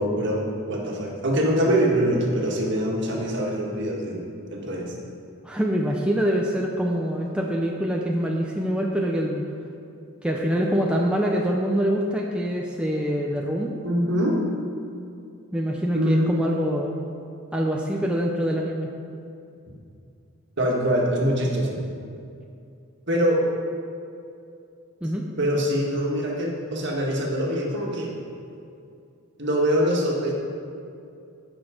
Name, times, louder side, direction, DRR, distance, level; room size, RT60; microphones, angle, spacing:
voice 1, 0.0-4.9 13.8-14.4 15.9-16.3 20.6-21.8 23.1-23.4 25.4-28.1 29.4-30.3, equal, 55° right, -1 dB, 1.8 m, -24 dB
voice 2, 5.4-9.4 10.2-13.7 15.5-16.9 17.5-18.9 25.0-25.2, equal, 5° right, -2 dB, 0.6 m, -25 dB
15.0 x 6.3 x 5.0 m, 2.5 s
head